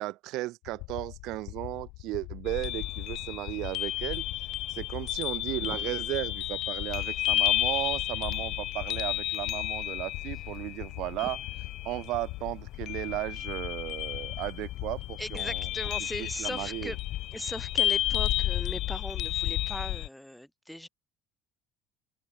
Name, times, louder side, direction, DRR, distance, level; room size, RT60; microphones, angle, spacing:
voice 1, 0.0-4.3 4.7-11.4 11.8-15.7 16.2-16.9, right 18 dB, 60° right, 2.0 m, -35 dB
sound 1, 0.6-18.6, left 27 dB, 80° left, 1.7 m, -44 dB
sound 2, 2.5-20.1, left 15 dB, 55° left, 0.6 m, -32 dB
voice 2, 15.2-17.0 17.3-20.9, equal, ahead, 0.7 m, -39 dB
open air
cardioid pair, 150°, 0 cm